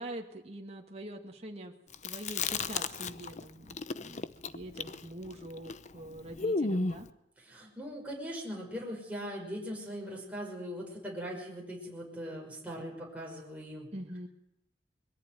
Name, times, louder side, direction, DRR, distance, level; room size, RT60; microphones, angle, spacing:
voice 1, 0.0-1.7 2.0-7.1 13.9-14.3, right 1 dB, 40° right, 1 dB, 2.2 m, -44 dB
Chewing mastication, 1.9-3.4 3.7-7.1, left 3 dB, 45° left, 0.8 m, -33 dB
voice 2, 7.4-13.9, equal, 10° right, -2 dB, 5.6 m, -40 dB
22.0 x 14.5 x 9.3 m, 0.79 s
head